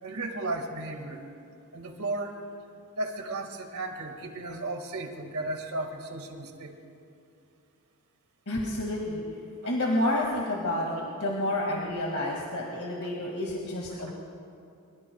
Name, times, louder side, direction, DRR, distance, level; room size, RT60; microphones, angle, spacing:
voice 1, 0.0-1.2 1.7-2.4 3.0-6.8 9.6-9.7 13.0-13.1 13.9-14.0, right 2 dB, 85° right, 3 dB, 1.9 m, -35 dB
voice 2, 8.5-9.2 9.6-14.1, left 1 dB, 70° left, -3 dB, 2.1 m, -29 dB
25.5 x 23.5 x 2.3 m, 2.6 s
head